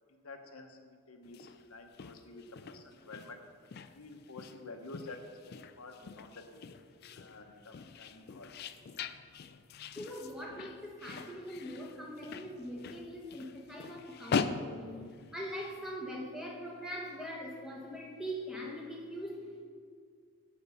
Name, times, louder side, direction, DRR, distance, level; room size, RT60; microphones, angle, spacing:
voice 1, 0.1-3.4 3.9-5.2 5.5-6.7 7.2-8.5, left 3 dB, 85° left, 4 dB, 1.0 m, -50 dB
sound 1, 1.2-15.7, left 5 dB, 45° left, 0.3 m, -42 dB
voice 2, 9.9-19.6, equal, 5° right, -2 dB, 1.4 m, -42 dB
9.9 x 5.4 x 7.0 m, 2.2 s
head